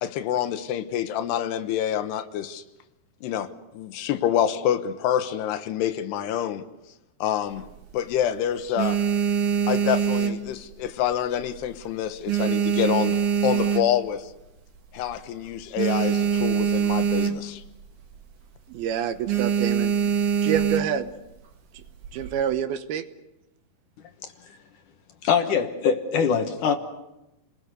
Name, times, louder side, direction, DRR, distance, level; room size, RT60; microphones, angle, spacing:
voice 1, 0.0-2.6 3.2-6.6 7.2-7.7 7.9-9.0 9.7-14.3 14.9-17.6, left 10 dB, 85° left, 10 dB, 3.2 m, -27 dB
sound 1, 7.5-8.2 8.6-11.1 11.4-11.7 12.0-14.3 14.7-14.8 15.0-15.1 15.5-17.7 18.0-18.2 18.6-18.8 19.3-21.1 21.8-22.4, right 8 dB, 55° right, 3.1 m, -24 dB
voice 2, 18.7-19.9 20.4-21.1 21.7-21.8 22.1-23.0, right 9 dB, 75° right, 10 dB, 2.8 m, -27 dB
voice 3, 25.2-26.8, left 6 dB, 65° left, 6 dB, 2.4 m, -23 dB
30.0 x 20.5 x 6.7 m, 0.93 s
omnidirectional pair, 4.7 m